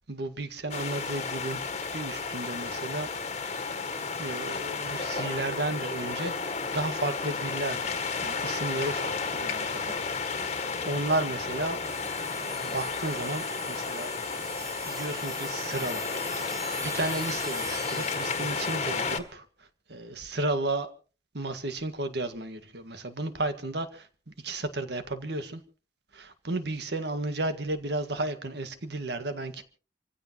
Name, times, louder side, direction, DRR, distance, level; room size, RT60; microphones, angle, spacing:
voice 1, 0.1-3.1 4.2-6.3 6.7-9.9 10.2-10.5 10.9-11.8 12.6-14.1 14.9-16.1 16.3-16.5 16.8-20.9 21.3-25.6 26.1-29.6, right 2 dB, 65° right, 1.8 m, -33 dB
sound 1, 0.7-19.2, left 4 dB, 40° left, 1.7 m, -32 dB
sound 2, 11.8-18.8, right 2 dB, 20° right, 4.4 m, -41 dB
28.0 x 15.5 x 3.0 m
head